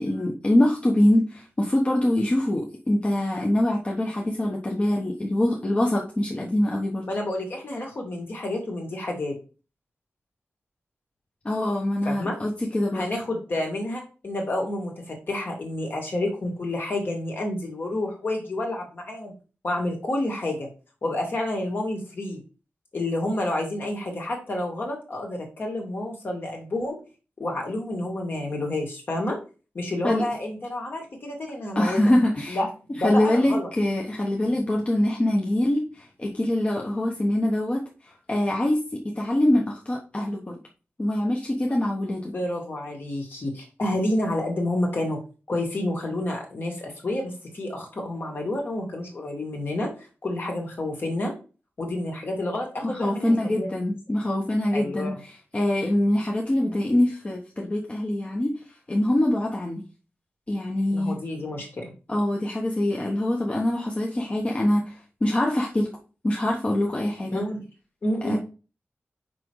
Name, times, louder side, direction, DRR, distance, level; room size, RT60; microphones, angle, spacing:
voice 1, 0.0-7.0 11.4-13.0 30.0-30.2 31.7-32.6 33.0-40.6 41.0-42.3 52.8-58.6 58.9-59.8 60.5-61.1 62.1-65.9 66.2-67.4 68.2-68.4, left 1 dB, 25° left, -1 dB, 1.2 m, -24 dB
voice 2, 7.1-9.4 12.1-12.4 12.9-19.3 19.6-20.7 21.0-22.4 22.9-27.0 27.4-29.4 29.7-32.0 32.5-32.7 32.9-33.7 42.3-45.2 45.5-49.9 50.2-51.3 51.8-53.7 54.7-55.2 60.9-61.9 67.3-67.6 68.0-68.4, left 1 dB, 50° left, 1 dB, 2.3 m, -29 dB
6.0 x 5.1 x 4.7 m, 0.34 s
wide cardioid pair, 155°, 5 cm